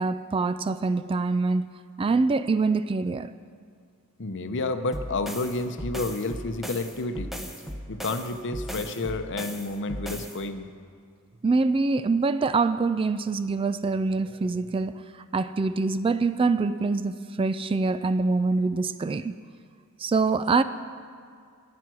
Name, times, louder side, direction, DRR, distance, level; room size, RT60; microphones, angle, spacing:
voice 1, 0.0-1.7 2.0-3.3 11.4-14.9 15.3-19.3 20.0-20.6, right 3 dB, 25° right, 13 dB, 0.3 m, -24 dB
voice 2, 4.2-7.3 7.9-10.7, left 2 dB, 55° left, 9 dB, 0.8 m, -30 dB
sound 1, 4.9-10.4, equal, ahead, 0.9 m, -37 dB
14.0 x 9.5 x 6.1 m, 2.2 s
head